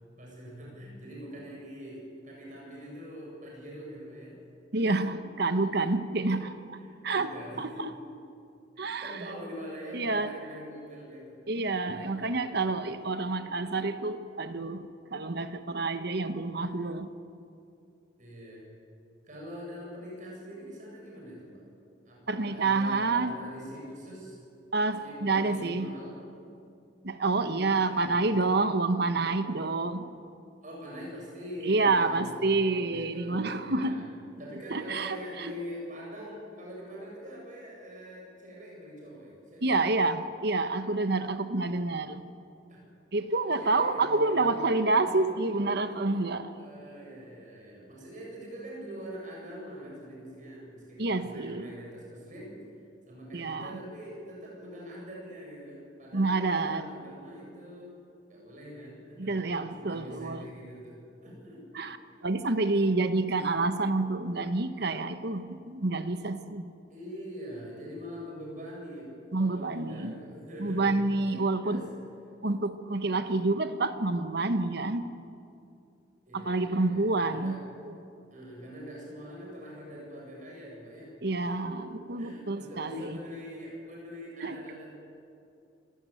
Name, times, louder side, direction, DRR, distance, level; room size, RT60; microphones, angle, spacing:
voice 1, 0.2-4.4 4.7-5.3 6.8-8.1 8.8-11.4 11.9-12.3 18.2-18.7 19.2-21.6 22.0-24.4 25.0-26.2 27.2-28.2 30.6-34.1 34.4-39.9 42.7-42.9 43.5-44.7 45.0-45.3 45.9-46.0 46.5-52.6 53.1-57.9 58.3-59.4 59.8-61.9 62.6-62.7 63.3-63.6 66.9-71.0 71.4-72.0 76.3-77.6 78.3-81.2 81.5-81.9 82.1-84.9, equal, 45° right, 7.8 m, -44 dB
voice 2, 4.7-6.8 7.0-7.3 7.6-7.9 8.8-9.2 9.9-10.3 11.5-17.1 22.3-23.4 24.7-25.9 27.0-30.1 31.6-34.1 34.7-35.5 39.6-42.2 43.1-46.6 51.0-51.7 53.3-53.8 56.1-56.8 59.2-60.4 61.7-62.0 62.2-66.6 69.3-70.1 70.6-71.8 72.4-75.1 76.3-77.6 81.2-83.2 84.4-84.6, right 3 dB, 60° right, 1.2 m, -28 dB
26.5 x 16.0 x 9.2 m
head